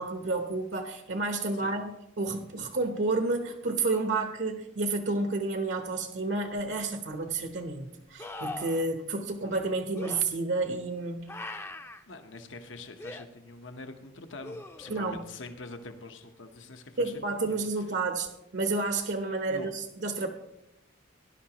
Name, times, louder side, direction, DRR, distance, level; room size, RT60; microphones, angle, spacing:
voice 1, 0.0-11.3 14.9-15.3 17.0-20.3, right 3 dB, 70° right, 5 dB, 1.0 m, -30 dB
sound 1, 6.6-6.7 8.2-8.9 9.9-10.2 11.3-12.0 13.0-13.2 14.4-15.1 18.3-18.4, left 2 dB, 15° left, 0.5 m, -40 dB
voice 2, 12.1-17.6 19.5-19.7, left 3 dB, 85° left, 6 dB, 1.0 m, -45 dB
18.0 x 11.0 x 3.0 m, 0.86 s
head